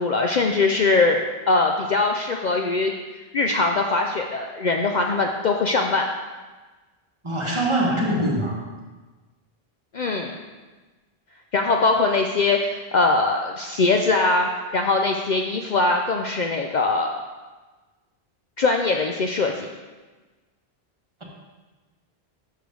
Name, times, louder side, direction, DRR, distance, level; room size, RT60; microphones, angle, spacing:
voice 1, 0.0-2.9 3.3-6.1 9.9-10.4 11.5-14.5 14.7-17.1 18.6-19.7, left 3 dB, 55° left, 2 dB, 0.6 m, -21 dB
voice 2, 7.2-8.6, right 1 dB, 30° right, -3 dB, 1.4 m, -23 dB
6.8 x 5.1 x 6.0 m, 1.3 s
omnidirectional pair, 1.1 m